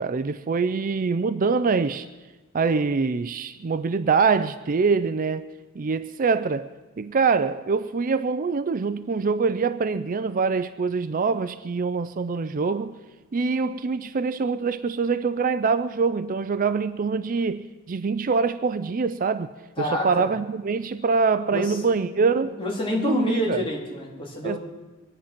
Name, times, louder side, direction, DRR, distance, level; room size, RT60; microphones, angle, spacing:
voice 1, 0.0-2.1 2.5-5.5 5.7-6.7 7.0-12.9 13.3-19.5 19.8-22.6 22.9-23.6 24.4-24.6, right 4 dB, 35° right, 0.4 m, -24 dB
voice 2, 19.8-20.3 21.5-21.8 22.3-24.6, left 1 dB, 25° left, 3.0 m, -28 dB
24.0 x 10.0 x 5.9 m
head